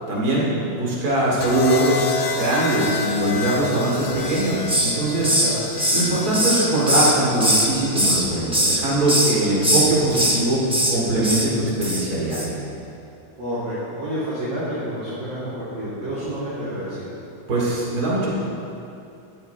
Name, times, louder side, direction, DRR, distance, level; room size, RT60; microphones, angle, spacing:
voice 1, 0.1-0.4 0.7-5.3 5.9-10.6 10.9-12.6 17.5-18.3, right 1 dB, 50° right, -5 dB, 3.0 m, -21 dB
sound 1, 1.4-9.5 10.8-11.1, left 5 dB, 70° left, 0.7 m, -30 dB
Hiss, 4.2-5.0 5.2-7.7 8.0-8.8 9.1-9.3 9.6-10.4 10.7-11.0 11.2-11.5 11.8-12.0 12.3-12.5, equal, 5° right, 0.8 m, -20 dB
voice 2, 13.4-17.1, equal, 70° right, -12 dB, 3.7 m, -29 dB
13.5 x 12.5 x 3.5 m, 2.7 s
omnidirectional pair, 2.2 m